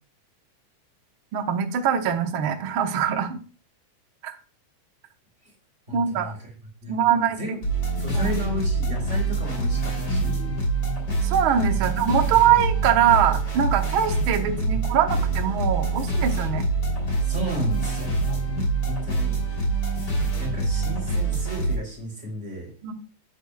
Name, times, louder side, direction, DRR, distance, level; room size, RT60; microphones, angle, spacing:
voice 1, 1.3-3.4 4.2-4.3 5.9-6.3 6.9-7.6 8.1-8.4 10.1-10.3 11.2-16.7 18.5-18.7 22.8-22.9, right 9 dB, 65° right, 5 dB, 1.3 m, -23 dB
voice 2, 5.9-6.4 6.8-7.6 8.0-10.6 11.7-11.9 14.7-14.8 15.1-15.4 17.2-19.3 19.9-22.7, equal, 20° right, -1 dB, 4.0 m, -34 dB
sound 1, 7.6-21.8, right 3 dB, 30° left, 3.6 m, -25 dB
12.0 x 9.9 x 2.3 m, 0.38 s
omnidirectional pair, 3.6 m